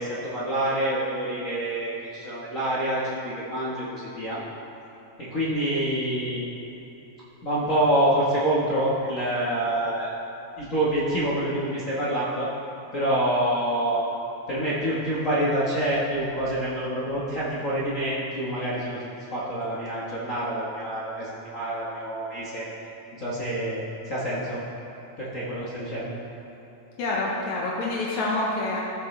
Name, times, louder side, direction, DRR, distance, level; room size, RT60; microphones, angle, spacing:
voice 1, 0.0-4.4 5.2-6.4 7.4-10.1 10.6-12.5 12.9-14.0 14.5-22.7 23.2-23.8 24.1-24.6 25.2-26.2, right 1 dB, 55° left, -9 dB, 0.9 m, -27 dB
voice 2, 27.0-28.8, left 2 dB, 80° left, -4 dB, 2.3 m, -27 dB
14.5 x 6.2 x 3.2 m, 2.9 s
omnidirectional pair, 3.3 m